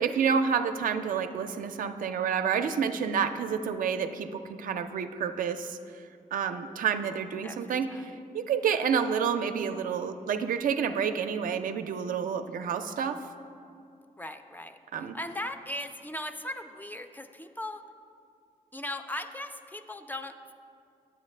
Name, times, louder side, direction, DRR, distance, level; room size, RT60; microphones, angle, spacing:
voice 1, 0.0-5.8 6.3-13.2 14.9-15.2, right 7 dB, 70° right, 8 dB, 0.4 m, -29 dB
voice 2, 7.4-8.1 14.2-14.8 15.1-17.8 18.7-20.5, left 1 dB, 15° left, 8 dB, 0.3 m, -38 dB
8.9 x 7.9 x 3.2 m, 2.4 s
cardioid pair, 110°, 14 cm